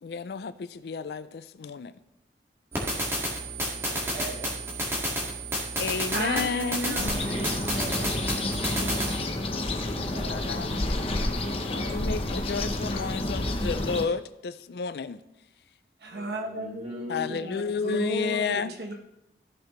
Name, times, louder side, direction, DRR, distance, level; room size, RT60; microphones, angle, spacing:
voice 1, 0.0-1.9 5.8-7.0 8.8-9.5 10.3-10.7 11.7-15.2 17.1-18.7, left 5 dB, 65° left, 14 dB, 0.4 m, -31 dB
sound 1, 2.7-9.2, right 1 dB, 15° right, 1.9 m, -31 dB
voice 2, 4.1-4.6 7.2-8.2 10.1-11.1 16.3-17.5, equal, 40° right, -3 dB, 2.5 m, -41 dB
voice 3, 6.1-7.2 16.0-18.9, right 1 dB, 65° right, 2 dB, 1.2 m, -34 dB
sound 2, 7.0-14.1, left 1 dB, 35° left, 0.8 m, -29 dB
14.0 x 5.9 x 3.1 m, 0.86 s
head